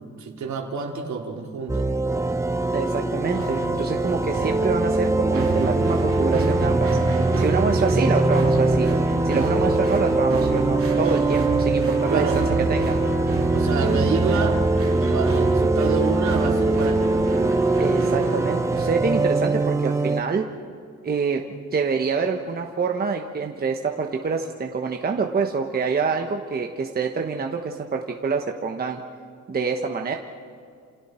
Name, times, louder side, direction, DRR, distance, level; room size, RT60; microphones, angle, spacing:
voice 1, 0.0-1.9 12.1-12.4 13.5-14.6 15.1-17.4, right 5 dB, 65° right, 1 dB, 3.2 m, -28 dB
sound 1, 1.7-20.2, right 2 dB, 10° right, 0.8 m, -22 dB
voice 2, 2.7-7.0 7.4-8.9 9.2-12.4 12.7-13.0 17.8-20.5 21.0-29.0 29.5-30.2, right 5 dB, 30° right, 3 dB, 1.1 m, -26 dB
sound 2, 3.4-19.0, right 5 dB, 45° right, 2.8 m, -31 dB
29.5 x 28.0 x 4.4 m, 2.3 s
wide cardioid pair, 175°, 31 cm